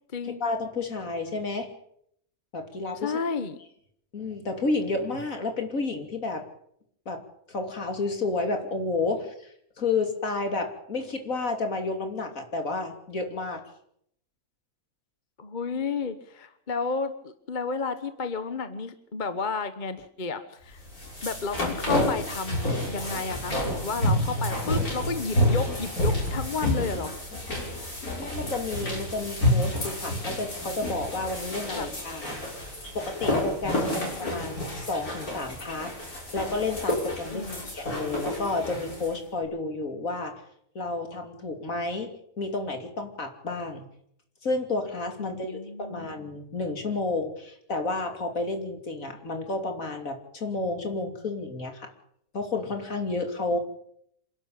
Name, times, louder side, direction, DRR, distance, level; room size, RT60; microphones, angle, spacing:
voice 1, 0.2-1.7 2.5-3.1 4.1-6.4 7.0-7.2 7.5-13.6 28.2-32.3 32.9-35.9 36.3-40.4 40.7-42.1 42.4-43.8 44.4-51.9 52.3-53.6, left 3 dB, 65° left, 5 dB, 3.3 m, -31 dB
voice 2, 2.9-3.6 15.4-20.8 21.2-27.1 31.7-31.9 33.9-34.5 37.3-37.7 45.2-46.1 53.5-53.6, left 4 dB, 35° left, 11 dB, 1.2 m, -32 dB
sound 1, 20.7-39.1, left 1 dB, 80° left, 7.1 m, -29 dB
27.0 x 12.0 x 8.8 m, 0.71 s
omnidirectional pair, 1.5 m